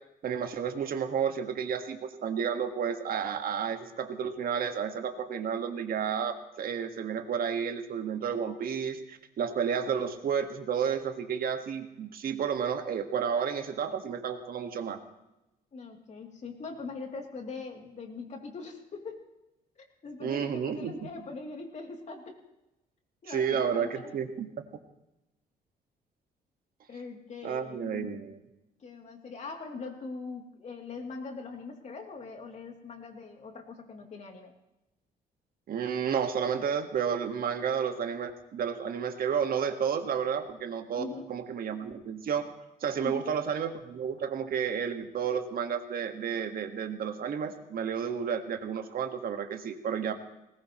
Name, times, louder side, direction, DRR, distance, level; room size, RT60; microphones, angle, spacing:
voice 1, 0.2-15.0 20.2-21.0 23.3-24.5 27.4-28.4 35.7-41.0 41.3-42.4 42.8-50.1, right 7 dB, 60° right, 6 dB, 1.7 m, -31 dB
voice 2, 15.7-19.3 19.8-22.4 23.2-24.1 26.9-28.2 28.8-34.5 41.0-41.3 43.0-43.3, left 4 dB, 45° left, 2 dB, 3.0 m, -42 dB
20.0 x 18.5 x 3.2 m, 0.94 s
cardioid pair, 105°, 17 cm